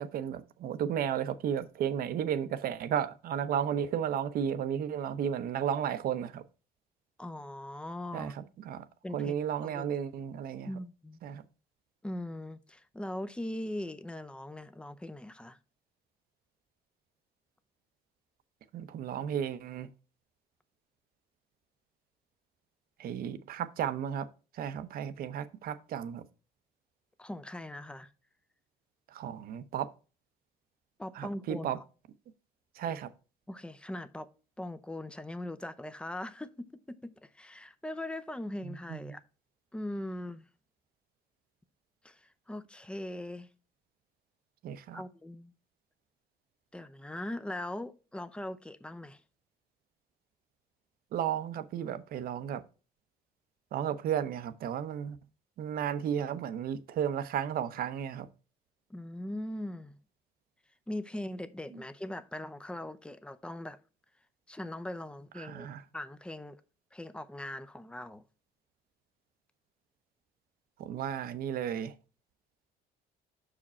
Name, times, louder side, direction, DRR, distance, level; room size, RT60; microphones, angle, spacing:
voice 1, 0.0-6.4 8.1-8.9 9.1-10.7 11.2-11.4 18.7-19.9 23.0-24.3 24.5-26.3 29.1-29.9 31.1-31.8 32.7-33.1 38.6-39.2 44.6-45.0 51.1-52.6 53.7-55.2 55.6-58.3 61.7-61.8 65.4-65.8 70.8-71.9, right 9 dB, 60° right, 0.7 m, -33 dB
voice 2, 7.2-8.3 9.0-9.3 9.6-9.9 10.6-11.2 12.0-15.6 27.2-28.1 31.0-31.8 33.5-34.3 34.6-39.2 39.7-40.4 42.0-43.5 44.9-45.5 46.7-49.2 58.9-60.0 60.9-63.8 64.5-65.7 65.9-66.6 66.9-68.2, left 1 dB, 5° left, 0.5 m, -40 dB
5.9 x 4.9 x 4.2 m
cardioid pair, 110°, 17 cm